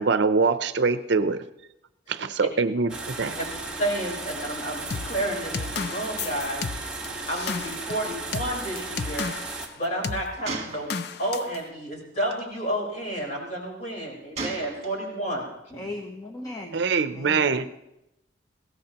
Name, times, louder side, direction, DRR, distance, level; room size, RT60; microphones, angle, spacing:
voice 1, 0.0-1.4 2.1-3.4 16.7-17.7, right 4 dB, 65° right, 12 dB, 0.6 m, -24 dB
sound 1, 2.9-9.7, right 3 dB, 5° right, 1.5 m, -35 dB
voice 2, 3.8-6.6 7.3-9.3 9.8-15.9, right 1 dB, 40° left, -2 dB, 4.6 m, -31 dB
sound 2, 4.9-9.7 10.0-10.3 10.9-11.6, left 5 dB, 55° left, 0.5 m, -33 dB
Gunshot gunfire, 8.1-8.2 8.5-8.6 10.4-11.4 12.2-12.4 14.4-15.3, right 4 dB, 35° right, 1.6 m, -36 dB
voice 3, 15.7-16.8 17.1-17.7, left 1 dB, 20° left, 2 dB, 0.9 m, -37 dB
21.0 x 16.5 x 2.9 m, 0.90 s
head